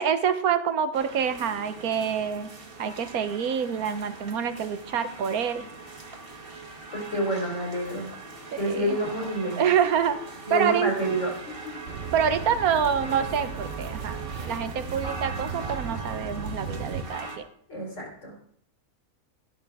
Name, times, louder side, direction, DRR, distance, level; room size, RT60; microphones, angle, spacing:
voice 1, 0.0-2.5 2.8-5.7 8.5-9.0 9.6-10.2 10.5-10.9 12.1-17.5, right 8 dB, 85° right, 11 dB, 1.4 m, -26 dB
sound 1, 0.9-17.4, right 3 dB, 40° right, 1.7 m, -41 dB
voice 2, 6.9-8.1 8.6-9.7 10.5-11.3 11.6-11.8 17.7-18.3, right 1 dB, 60° left, -1 dB, 4.2 m, -28 dB
sound 2, 11.9-17.0, right 5 dB, 60° right, 1.3 m, -36 dB
13.5 x 11.0 x 3.5 m, 0.63 s
omnidirectional pair, 1.5 m